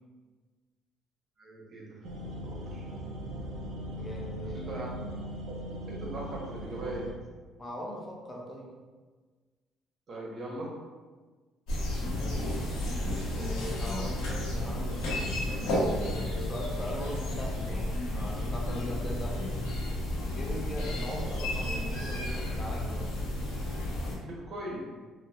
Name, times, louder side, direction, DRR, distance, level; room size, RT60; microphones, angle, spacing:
voice 1, 1.4-2.0 2.4-2.9 4.5-4.9 5.8-7.1 10.1-10.7 24.2-24.8, right 1 dB, 45° right, -3 dB, 0.8 m, -39 dB
sound 1, 2.0-7.1, right 1 dB, 80° right, 0.6 m, -39 dB
voice 2, 4.0-4.6 7.6-8.8 12.1-12.5 13.3-15.1 16.0-19.5 20.3-23.1, left 1 dB, 20° left, -2 dB, 0.5 m, -40 dB
sound 2, 11.7-24.1, left 1 dB, 85° left, 0.8 m, -32 dB
3.7 x 2.1 x 2.3 m, 1.4 s
cardioid pair, 90°, 0 cm